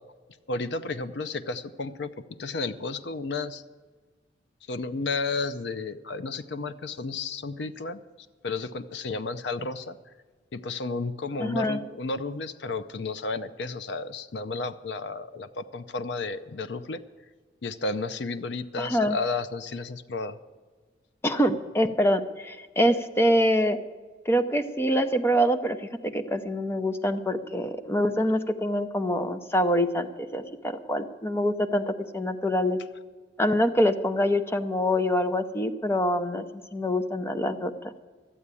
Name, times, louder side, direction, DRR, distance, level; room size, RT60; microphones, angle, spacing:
voice 1, 0.5-2.1 2.4-3.6 4.7-8.0 8.4-10.0 10.5-17.0 17.6-20.4, left 3 dB, 65° left, 12 dB, 0.5 m, -32 dB
voice 2, 11.4-11.8 18.8-19.2 21.2-23.8 24.3-32.8 33.4-36.4 36.7-37.9, equal, 15° left, 8 dB, 0.6 m, -25 dB
12.5 x 8.5 x 8.4 m, 1.4 s
head